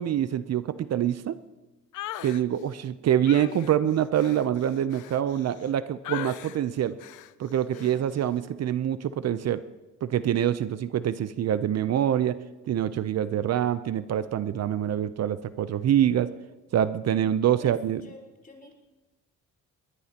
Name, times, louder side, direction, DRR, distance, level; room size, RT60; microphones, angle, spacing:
voice 1, 0.0-1.4 2.2-7.0 7.4-9.6 10.0-12.4 12.7-16.3 16.7-18.0, right 10 dB, 60° right, 13 dB, 0.7 m, -25 dB
sound 1, 1.9-2.4 3.2-5.7 6.0-6.6 7.0-7.3 7.7-8.0, left 13 dB, 85° left, 0.7 m, -39 dB
voice 2, 17.6-18.7, left 2 dB, 30° left, 1 dB, 4.0 m, -48 dB
21.0 x 20.0 x 2.9 m, 1.1 s
cardioid pair, 90°, 30 cm